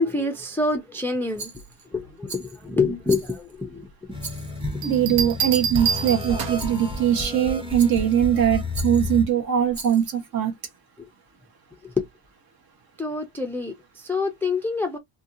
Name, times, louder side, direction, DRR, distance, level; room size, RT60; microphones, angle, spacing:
voice 1, 0.0-1.5 1.9-3.9 6.3-6.4 11.8-12.1 13.0-15.0, left 3 dB, 5° left, 0.3 m, -26 dB
Rattle, 1.4-1.9 2.3-2.6 3.1-3.6 4.2-4.8 5.5-5.8 6.6-7.0 7.8-8.2 8.7-9.2 9.7-10.2, right 4 dB, 35° right, 1.4 m, -39 dB
sound 1, 4.1-9.3, left 2 dB, 10° right, 0.8 m, -31 dB
voice 2, 4.8-10.5, right 9 dB, 55° right, 1.1 m, -21 dB
sound 2, 4.8-6.8 8.4-8.7, right 7 dB, 80° right, 1.0 m, -27 dB
2.7 x 2.6 x 2.6 m
cardioid pair, 145°, 45 cm